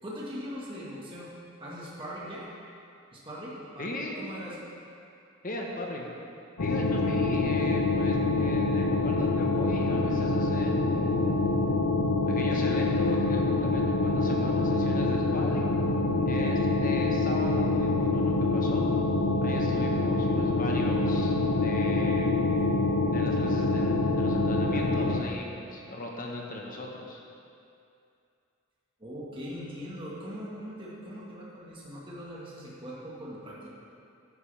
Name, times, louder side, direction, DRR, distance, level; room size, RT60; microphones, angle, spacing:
voice 1, 0.0-1.3 1.6-2.4 3.1-4.7 29.0-33.7, equal, 25° right, -7 dB, 1.7 m, -40 dB
voice 2, 3.8-4.2 5.4-6.1 6.6-11.4 12.3-15.7 16.3-18.8 19.4-21.3 21.6-22.3 23.1-27.2, left 1 dB, 40° left, 0 dB, 1.2 m, -38 dB
sound 1, 6.6-25.2, left 2 dB, 85° left, 0.8 m, -26 dB
11.0 x 10.0 x 3.5 m, 2.5 s
head